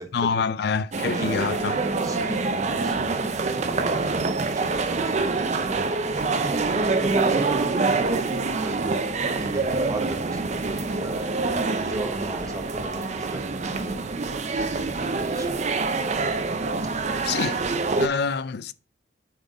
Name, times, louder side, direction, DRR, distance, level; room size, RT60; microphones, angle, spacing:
voice 1, 0.1-1.8 17.2-17.6 18.0-18.7, left 5 dB, 60° left, 0.4 m, -26 dB
sound 1, 0.9-18.1, right 3 dB, 40° right, 0.5 m, -26 dB
voice 2, 1.1-1.5 1.9-16.2 17.9-18.2, right 2 dB, 20° right, 1.0 m, -37 dB
7.2 x 3.9 x 3.9 m
head